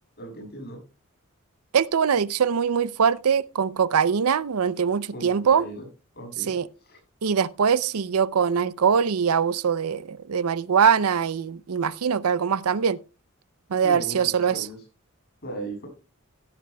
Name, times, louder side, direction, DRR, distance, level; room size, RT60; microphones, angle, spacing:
voice 1, 0.2-0.8 5.1-5.8 6.1-6.5 6.8-7.0 13.7-14.8 15.4-15.9, right 2 dB, 50° left, 7.5 m, -38 dB
voice 2, 1.7-5.7 6.5-6.7 7.2-13.0 13.7-14.7, right 7 dB, 80° right, 0.5 m, -22 dB
16.5 x 12.5 x 2.3 m
head